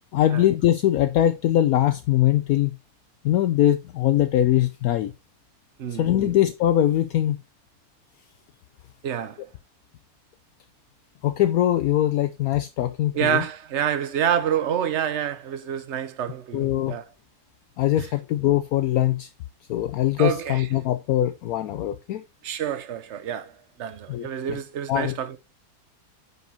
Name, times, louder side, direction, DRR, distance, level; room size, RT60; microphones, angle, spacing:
voice 1, 0.1-2.7 3.2-5.1 6.0-7.4 11.2-13.4 16.5-16.9 17.8-19.3 19.7-22.2 24.1-24.3 24.9-25.1, left 12 dB, 70° left, 1.0 m, -22 dB
voice 2, 5.8-6.3 9.0-9.5 13.1-17.1 18.0-18.1 20.2-20.7 22.4-25.4, right 9 dB, 55° right, 1.0 m, -28 dB
9.1 x 5.5 x 2.8 m
omnidirectional pair, 1.7 m